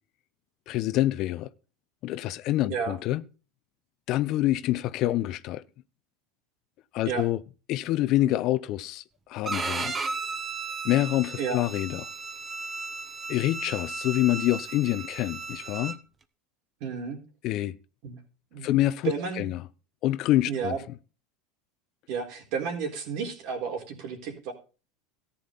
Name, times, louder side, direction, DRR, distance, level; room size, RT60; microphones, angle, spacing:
voice 1, 0.7-1.5 2.0-3.2 4.1-5.6 6.9-7.4 7.7-9.0 9.3-10.0 10.8-12.1 13.3-16.0 17.4-17.7 18.6-19.7 20.0-20.8, left 15 dB, 55° left, 0.7 m, -26 dB
Bowed string instrument, 9.4-16.0, right 4 dB, 25° right, 1.3 m, -35 dB
voice 2, 16.8-17.2 18.0-18.2 18.5-19.5 20.5-20.8 22.1-24.5, right 6 dB, 65° right, 4.1 m, -32 dB
14.0 x 10.0 x 4.0 m
hypercardioid pair, 100°, 0 cm